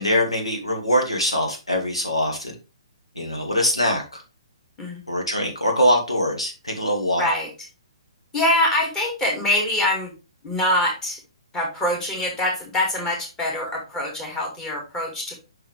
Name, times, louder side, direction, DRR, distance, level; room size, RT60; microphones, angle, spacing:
voice 1, 0.0-2.6 3.2-4.2 5.1-7.3, equal, 85° left, 1 dB, 1.9 m, -23 dB
voice 2, 7.2-7.5 8.3-10.1 10.4-11.2 11.5-15.3, left 1 dB, 15° left, -2 dB, 2.3 m, -24 dB
5.9 x 5.6 x 3.4 m, 0.31 s
figure-of-eight pair, 130°, 3 cm